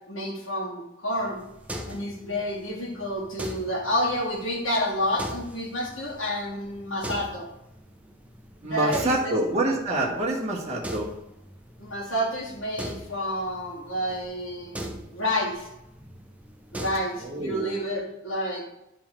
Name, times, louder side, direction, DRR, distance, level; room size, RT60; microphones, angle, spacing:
voice 1, 0.1-1.4 1.9-7.5 8.6-9.4 11.8-14.8 15.1-15.7 16.7-18.7, left 1 dB, 80° left, -4 dB, 2.1 m, -29 dB
sound 1, 1.2-17.6, right 1 dB, 5° right, 0.6 m, -42 dB
voice 2, 8.6-11.1 17.2-17.7, right 1 dB, 35° right, -4 dB, 1.5 m, -27 dB
10.0 x 3.8 x 4.4 m, 0.87 s
head